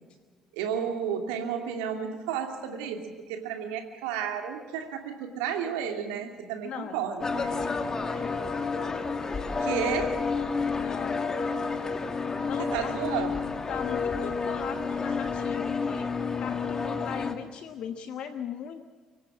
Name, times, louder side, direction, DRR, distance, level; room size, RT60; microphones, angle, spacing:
voice 1, 0.5-7.2 9.6-10.2 12.7-13.5, right 8 dB, 70° right, 5 dB, 2.6 m, -32 dB
voice 2, 6.6-7.1 7.7-8.5 10.8-11.3 12.4-13.3 13.7-16.1 16.4-18.8, left 8 dB, 55° left, 9 dB, 1.2 m, -39 dB
sound 1, 7.2-17.3, left 4 dB, 30° left, 2.5 m, -30 dB
24.0 x 17.0 x 7.3 m, 1.5 s
figure-of-eight pair, 45°, 2 cm